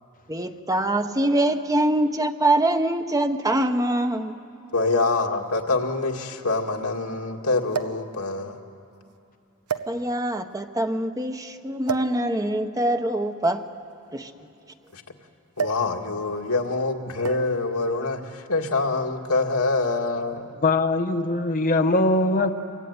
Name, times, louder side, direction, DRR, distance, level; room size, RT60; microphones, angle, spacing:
voice 1, 0.3-4.3 9.9-13.6 14.1-14.3, right 1 dB, 15° right, 7 dB, 1.0 m, -24 dB
sound 1, 4.0-4.1 5.2-5.3 5.5-5.6 7.7-8.1 8.9-9.1 9.7-10.4 11.8-12.2 13.3-14.9 15.6-15.9 16.2-16.5 17.2-17.6 18.6-18.8, right 6 dB, 85° right, 1.1 m, -32 dB
voice 2, 4.7-8.6 14.9-15.0 15.6-18.2 18.5-20.5, left 3 dB, 85° left, 1 dB, 2.1 m, -25 dB
voice 3, 20.6-22.5, left 2 dB, 40° left, 5 dB, 1.0 m, -21 dB
26.5 x 23.0 x 9.6 m, 2.7 s
head